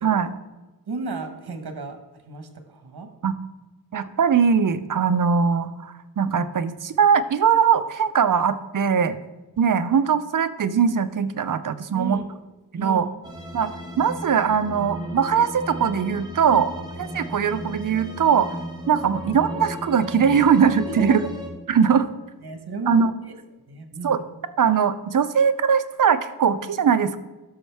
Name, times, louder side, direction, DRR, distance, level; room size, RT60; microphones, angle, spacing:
voice 1, 0.9-2.0 2.3-3.1 11.9-12.3 12.7-13.0 16.5-16.9 20.8-21.3 22.4-23.3 23.7-24.3, right 3 dB, 75° right, 6 dB, 1.3 m, -33 dB
voice 2, 3.9-9.2 9.6-12.2 12.7-13.1 13.5-16.7 17.1-18.5 18.9-21.2 21.7-22.1 22.9-23.1 24.0-24.2 24.6-27.2, right 7 dB, 55° right, 11 dB, 0.6 m, -20 dB
sound 1, 13.2-21.5, equal, 10° right, 1.5 m, -35 dB
12.5 x 6.3 x 3.5 m, 1.1 s
wide cardioid pair, 105°, 39 cm